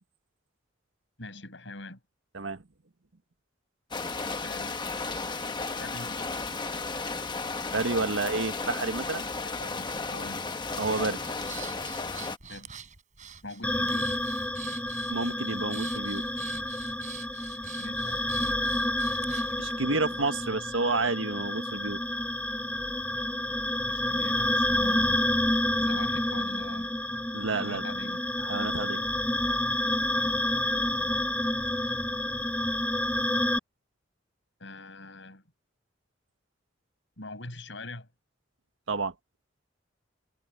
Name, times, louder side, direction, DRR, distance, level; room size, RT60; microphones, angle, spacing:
voice 1, 1.2-2.0 4.4-5.1 5.7-6.4 9.4-10.5 12.4-12.8 13.4-14.2 17.8-18.8 19.2-19.3 23.9-25.2 25.8-27.0 27.6-28.2 30.1-31.5 32.2-32.3 34.6-35.4 37.2-38.1, left 2 dB, 70° left, 5.8 m, -44 dB
sound 1, 3.9-12.4, left 3 dB, 25° left, 1.1 m, -34 dB
voice 2, 7.7-9.3 10.8-11.2 15.1-16.2 19.6-22.0 27.3-27.9 28.4-29.1 38.9-39.1, right 3 dB, 85° right, 1.4 m, -30 dB
Breathing, 10.7-19.6, right 7 dB, 40° right, 7.2 m, -46 dB
sound 2, 13.6-33.6, left 1 dB, 5° left, 0.7 m, -29 dB
head